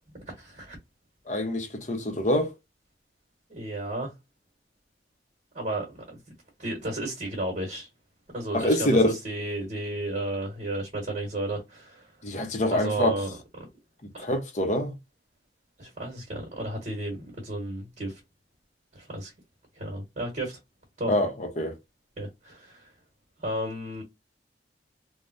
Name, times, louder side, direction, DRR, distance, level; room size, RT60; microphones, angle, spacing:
voice 1, 0.3-0.8 3.5-4.1 5.5-6.2 6.6-7.9 8.3-12.1 12.7-13.3 15.8-18.2 18.9-19.3 19.7-20.6 21.0-21.2 22.2-22.9 23.4-24.0, right 1 dB, 45° right, 1.1 m, -33 dB
voice 2, 1.3-2.5 8.5-9.1 12.2-13.1 14.2-14.9 21.1-21.7, left 1 dB, 40° left, 0.7 m, -25 dB
3.4 x 2.1 x 2.5 m
head